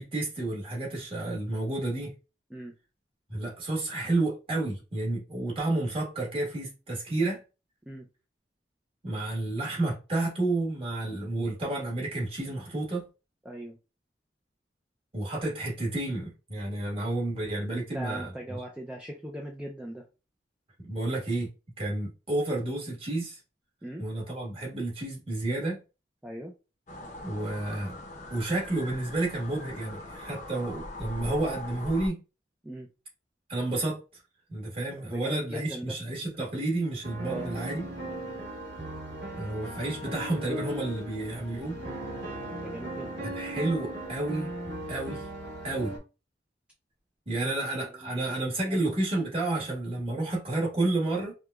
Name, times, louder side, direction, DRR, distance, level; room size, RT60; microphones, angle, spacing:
voice 1, 0.0-2.1 3.3-7.4 9.0-13.0 15.1-18.6 20.9-21.5 21.8-23.4 24.0-25.8 27.2-27.9 28.3-32.2 33.5-34.0 34.5-37.8 39.4-41.8 43.2-44.5 44.9-45.3 45.6-45.9 47.3-51.3, right 2 dB, 30° right, 1.5 m, -30 dB
voice 2, 13.5-13.8 17.7-20.0 23.8-24.1 26.2-26.5 32.6-32.9 35.1-35.9 37.3-37.5 42.6-43.1 47.4-48.2 48.6-48.9, right 1 dB, 5° right, 0.4 m, -40 dB
sound 1, 26.9-32.1, left 1 dB, 45° left, 0.7 m, -41 dB
sound 2, 37.0-46.0, right 1 dB, 75° right, 1.5 m, -38 dB
4.8 x 2.2 x 2.3 m
head